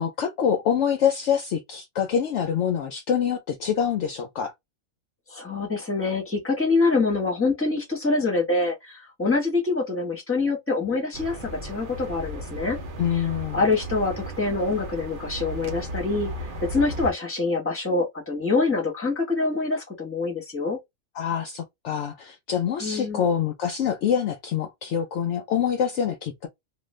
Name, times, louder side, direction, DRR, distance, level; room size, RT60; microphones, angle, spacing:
voice 1, 0.0-4.5 13.0-13.7 21.2-26.5, left 8 dB, 65° left, 0.8 m, -25 dB
voice 2, 5.3-12.8 13.5-20.8 22.8-23.2, left 3 dB, 10° left, 1.0 m, -25 dB
sound 1, 11.1-17.1, right 1 dB, 50° right, 0.7 m, -35 dB
2.5 x 2.4 x 3.1 m
omnidirectional pair, 1.5 m